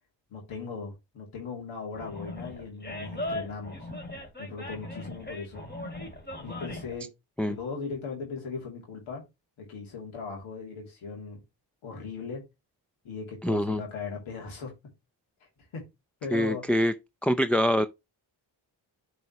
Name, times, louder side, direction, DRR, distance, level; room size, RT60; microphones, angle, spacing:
voice 1, 0.3-3.9 4.4-5.7 6.4-7.1 7.4-9.2 9.6-11.4 11.8-12.4 13.0-14.7 15.4-15.8 16.2-16.9, left 4 dB, 85° left, 2.8 m, -38 dB
Animal, 1.9-7.0, left 1 dB, 20° left, 2.6 m, -38 dB
voice 2, 13.4-13.8 16.3-16.9 17.2-17.9, equal, 5° left, 0.4 m, -24 dB
9.5 x 4.8 x 3.0 m
cardioid pair, 65°, 47 cm